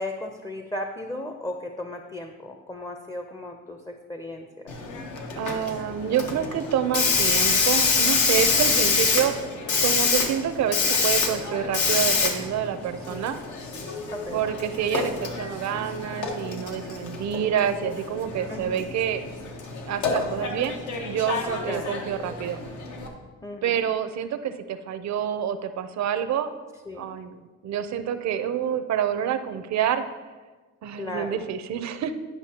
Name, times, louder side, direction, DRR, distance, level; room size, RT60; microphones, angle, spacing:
voice 1, 0.0-4.7 8.7-9.0 13.1-13.3 14.1-14.5 18.5-18.8 21.6-22.0 23.4-23.8 26.9-27.1 30.9-31.5, left 1 dB, 15° left, 5 dB, 0.6 m, -36 dB
Hiss, 4.7-23.1, left 4 dB, 75° left, 1.1 m, -27 dB
voice 2, 5.4-9.3 9.8-13.4 14.3-19.2 19.9-22.6 23.6-26.5 27.0-30.0 30.8-32.1, right 9 dB, 65° right, 10 dB, 0.6 m, -27 dB
10.5 x 5.6 x 2.8 m, 1.3 s
cardioid pair, 90°, 30 cm